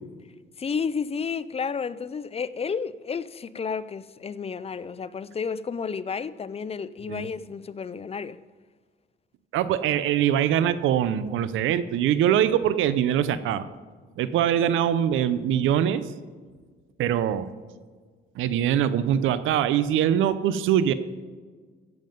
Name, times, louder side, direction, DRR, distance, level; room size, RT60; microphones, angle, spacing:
voice 1, 0.6-8.4, left 6 dB, 30° left, 0.5 m, -31 dB
voice 2, 9.5-13.7 14.2-16.1 17.0-17.5 18.4-20.9, right 10 dB, 85° right, 0.7 m, -23 dB
15.5 x 7.5 x 5.3 m
cardioid pair, 90°, 20 cm